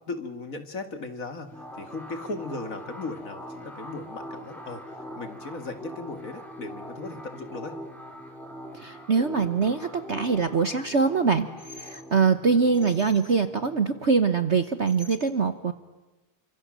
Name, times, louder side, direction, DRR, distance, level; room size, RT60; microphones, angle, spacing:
voice 1, 0.1-7.8, left 3 dB, 45° left, 8 dB, 2.2 m, -37 dB
sound 1, 1.5-14.7, equal, ahead, 4.6 m, -42 dB
voice 2, 8.7-15.7, right 5 dB, 45° right, 10 dB, 1.1 m, -23 dB
29.0 x 25.5 x 7.6 m, 1.1 s
omnidirectional pair, 2.1 m